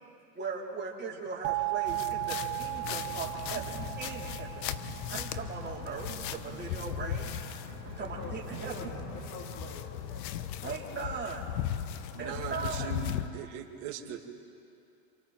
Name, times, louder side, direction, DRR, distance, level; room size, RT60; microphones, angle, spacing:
voice 1, 0.3-4.7 5.1-7.3 7.9-8.8 10.6-11.5 12.2-12.9, right 5 dB, 20° right, -3 dB, 4.2 m, -39 dB
sound 1, 1.4-6.2, right 21 dB, 40° right, 0.6 m, -36 dB
sound 2, 1.9-13.3, left 10 dB, 85° left, 1.1 m, -38 dB
sound 3, 2.6-9.8, right 9 dB, 85° right, 2.4 m, -47 dB
voice 2, 8.0-11.1, left 4 dB, 45° left, -4 dB, 3.8 m, -47 dB
voice 3, 12.1-14.3, right 8 dB, 65° right, -1 dB, 2.7 m, -40 dB
28.5 x 28.0 x 4.5 m, 2.6 s
supercardioid pair, 130°, 49 cm